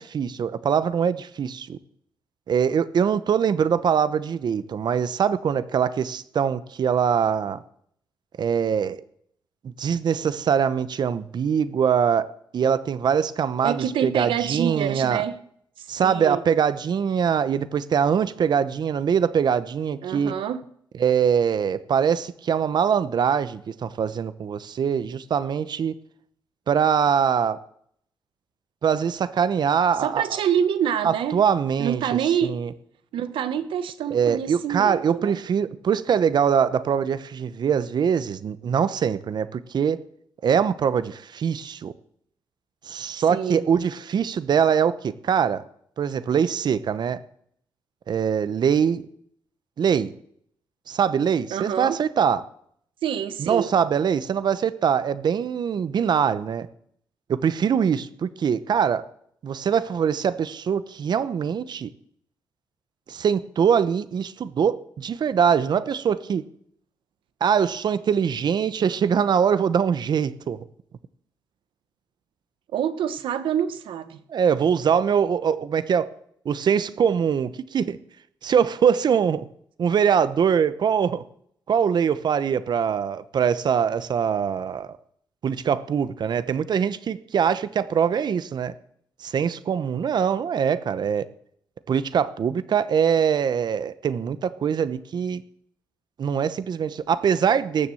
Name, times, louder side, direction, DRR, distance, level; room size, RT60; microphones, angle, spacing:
voice 1, 0.0-1.8 2.5-7.6 8.4-9.0 9.6-15.2 15.9-20.3 21.0-25.9 26.7-27.6 28.8-30.4 31.0-32.0 32.4-32.7 34.1-40.0 40.4-41.9 42.8-45.6 46.0-47.2 48.1-49.1 49.8-50.1 50.9-52.4 53.4-56.7 57.3-59.0 59.4-61.9 63.1-66.4 67.4-70.6 74.3-76.1 76.4-78.0 78.4-79.5 79.8-81.2 81.7-84.9 85.4-88.7 89.2-91.3 91.9-95.4 96.2-97.9, right 7 dB, 60° right, 15 dB, 1.0 m, -23 dB
voice 2, 13.6-15.4 15.8-16.4 20.0-20.6 30.0-31.4 31.8-32.6 33.1-35.4 43.3-43.6 51.5-52.0 53.0-53.7 72.7-74.2, right 9 dB, 85° right, 12 dB, 1.1 m, -26 dB
18.5 x 7.3 x 7.8 m, 0.67 s
cardioid pair, 85°, 8 cm